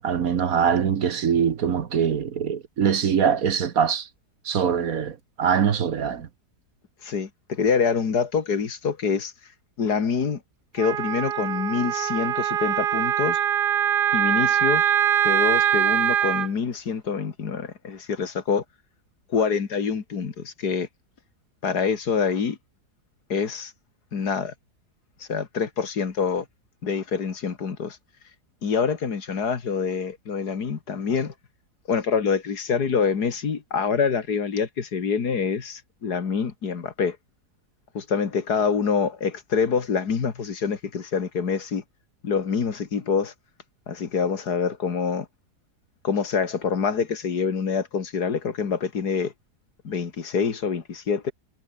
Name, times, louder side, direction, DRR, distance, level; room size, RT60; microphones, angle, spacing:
voice 1, 0.0-4.1 4.4-6.3, right 7 dB, 60° right, 1.6 m, -23 dB
voice 2, 7.0-9.3 9.8-10.4 10.7-13.4 14.1-14.9 15.2-18.6 19.3-20.9 21.6-22.6 23.3-23.7 24.1-24.5 25.3-26.5 26.8-28.0 28.6-31.3 31.9-37.2 37.9-41.8 42.2-43.3 43.9-45.3 46.0-49.3 49.8-51.3, left 6 dB, 70° left, 2.5 m, -26 dB
Wind instrument woodwind instrument, 10.8-16.5, right 10 dB, 80° right, 1.6 m, -23 dB
omnidirectional pair, 1.8 m